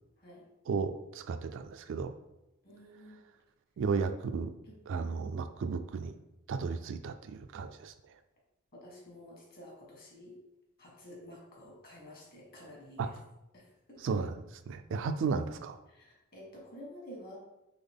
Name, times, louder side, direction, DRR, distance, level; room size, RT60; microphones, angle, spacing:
voice 1, 0.7-2.1 3.8-4.5 4.9-6.1 6.5-7.9 13.0-13.1 14.0-14.4 14.7-15.8, right 5 dB, 55° right, 9 dB, 0.3 m, -34 dB
voice 2, 2.6-3.2 8.7-10.4 10.8-13.2 13.5-14.2 15.9-17.4, left 1 dB, 45° left, -3 dB, 1.4 m, -50 dB
4.0 x 3.4 x 3.5 m, 0.92 s
head